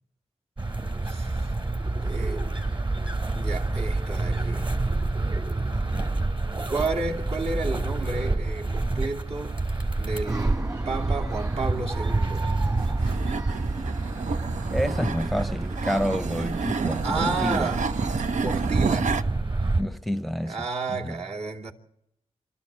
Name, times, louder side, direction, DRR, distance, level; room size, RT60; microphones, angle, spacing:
sound 1, 0.6-19.8, right 2 dB, 45° right, 3.2 m, -28 dB
voice 1, 1.1-1.5 1.9-2.5 3.3-4.7 6.7-9.6 10.0-12.5 17.0-18.0 18.4-19.2 20.4-21.7, right 3 dB, 65° right, 2.7 m, -31 dB
sound 2, 10.3-17.9, right 2 dB, 30° right, 1.7 m, -40 dB
sound 3, 12.8-19.2, right 5 dB, 80° right, 0.8 m, -30 dB
voice 2, 14.7-17.7 19.8-20.6 20.9-21.1, equal, ahead, 0.7 m, -29 dB
27.0 x 13.0 x 8.8 m
wide cardioid pair, 95°, 12 cm